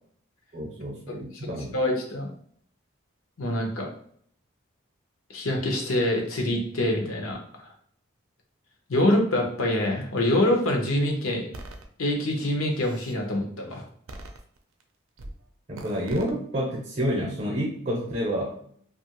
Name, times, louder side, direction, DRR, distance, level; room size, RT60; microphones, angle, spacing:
voice 1, 0.5-1.8 15.7-18.5, equal, 30° right, -2 dB, 0.6 m, -29 dB
voice 2, 1.7-2.3 3.4-3.9 5.3-7.7 8.9-11.5 12.0-13.8, left 1 dB, 90° left, 2 dB, 0.8 m, -25 dB
sound 1, 11.5-11.8 12.5-13.2 14.1-14.8 15.2-15.4 15.7-16.3, right 1 dB, 80° right, 0.5 m, -41 dB
2.7 x 2.5 x 2.9 m, 0.62 s
head